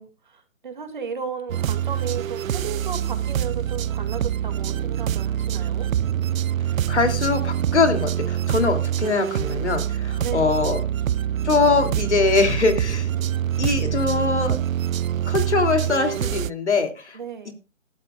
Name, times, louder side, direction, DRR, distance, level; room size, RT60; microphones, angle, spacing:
voice 1, 0.0-5.9 10.2-10.8 17.1-17.5, right 6 dB, 40° right, 2.3 m, -34 dB
sound 1, 1.5-16.5, right 10 dB, 90° right, 0.5 m, -25 dB
voice 2, 6.9-10.9 11.4-13.1 13.6-14.6 15.3-17.2 17.4-17.5, left 4 dB, 60° left, 3.1 m, -22 dB
18.0 x 12.5 x 2.4 m
hypercardioid pair, 170°, 39 cm